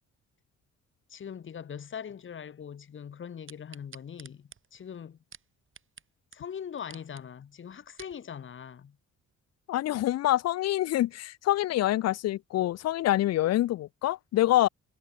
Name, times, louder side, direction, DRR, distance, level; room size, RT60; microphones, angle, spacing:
voice 1, 1.1-5.2 6.3-9.0, left 8 dB, 40° left, 1.2 m, -41 dB
sound 1, 3.5-6.1 6.3-6.4 6.8-7.2 7.7-8.2 8.8-8.9, right 6 dB, 40° right, 2.9 m, -50 dB
voice 2, 9.7-14.7, left 14 dB, 60° left, 0.5 m, -26 dB
cardioid pair, 90°, 30 cm